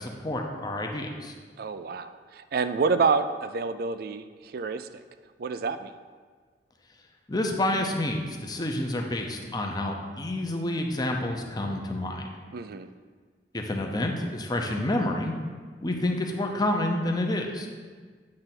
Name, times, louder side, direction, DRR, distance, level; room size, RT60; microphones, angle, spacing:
voice 1, 0.0-1.3 7.3-12.3 13.5-15.3 15.8-17.7, left 1 dB, 25° left, 2 dB, 0.7 m, -29 dB
voice 2, 1.6-4.9 5.4-5.9 12.5-12.9, right 4 dB, 55° right, 11 dB, 0.4 m, -28 dB
8.7 x 3.4 x 5.9 m, 1.5 s
head